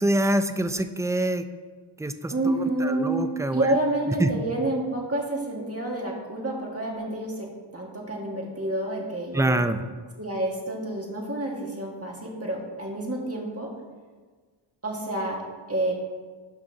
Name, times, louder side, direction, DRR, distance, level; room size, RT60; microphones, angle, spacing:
voice 1, 0.0-1.4 2.0-3.7 4.2-4.3 9.3-9.8, right 1 dB, 5° right, 9 dB, 0.3 m, -25 dB
voice 2, 2.3-3.3 3.5-7.5 7.7-9.6 10.2-13.7 14.8-15.4 15.7-15.9, right 1 dB, 30° right, -1 dB, 1.7 m, -28 dB
12.0 x 5.7 x 2.8 m, 1.5 s
wide cardioid pair, 65°, 47 cm